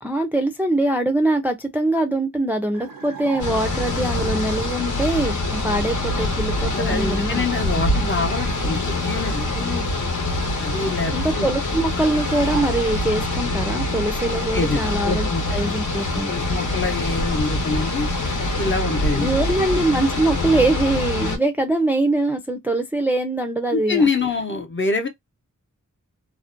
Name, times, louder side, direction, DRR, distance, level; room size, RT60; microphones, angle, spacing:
voice 1, 0.0-7.5 7.9-8.1 9.5-9.8 11.1-16.3 19.2-24.1, right 2 dB, 5° right, 0.4 m, -23 dB
sound 1, 2.7-3.9 12.0-13.3, right 6 dB, 90° right, 0.5 m, -37 dB
sound 2, 3.4-21.4, left 2 dB, 70° left, 0.9 m, -24 dB
voice 2, 6.7-9.5 10.6-11.5 14.5-15.4 16.3-18.1 18.6-19.3 23.7-25.1, left 3 dB, 40° left, 0.7 m, -25 dB
2.5 x 2.1 x 2.5 m
wide cardioid pair, 100°, 32 cm